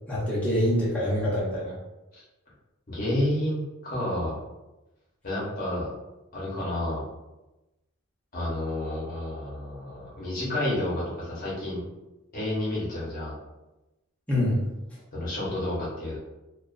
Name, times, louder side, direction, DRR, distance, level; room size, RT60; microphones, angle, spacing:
voice 1, 0.1-1.7 14.3-14.6, left 1 dB, 5° left, -8 dB, 0.7 m, -25 dB
voice 2, 2.9-4.4 5.2-5.9 6.3-7.0 8.3-11.8 12.3-13.3 15.1-16.2, left 1 dB, 40° left, -6 dB, 0.8 m, -30 dB
2.3 x 2.3 x 2.4 m, 1.0 s
head